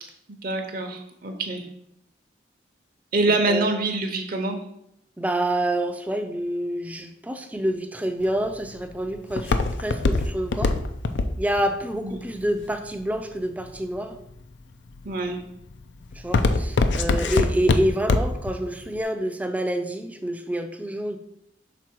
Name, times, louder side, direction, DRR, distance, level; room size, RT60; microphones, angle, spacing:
voice 1, 0.4-1.6 3.1-4.6 12.0-12.2 15.0-15.4, right 2 dB, 50° right, 5 dB, 0.7 m, -25 dB
voice 2, 5.2-10.7 11.4-14.2 16.2-21.2, right 1 dB, 10° right, 6 dB, 0.4 m, -27 dB
Walk footsteps, 8.2-13.4 14.0-14.4 14.9-15.3 15.6-18.5 18.8-18.9, left 3 dB, 80° left, 0.5 m, -23 dB
6.0 x 3.8 x 4.5 m, 0.78 s
head